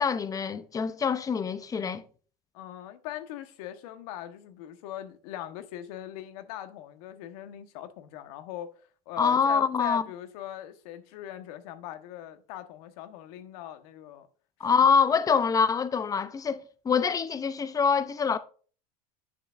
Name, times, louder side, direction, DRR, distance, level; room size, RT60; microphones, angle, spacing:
voice 1, 0.0-2.0 9.2-10.0 14.6-18.4, left 6 dB, 15° left, 0.6 m, -25 dB
voice 2, 2.5-8.7 9.1-14.3 14.8-14.9, left 12 dB, 65° left, 1.2 m, -41 dB
10.0 x 6.9 x 2.5 m
supercardioid pair, 115°, 20 cm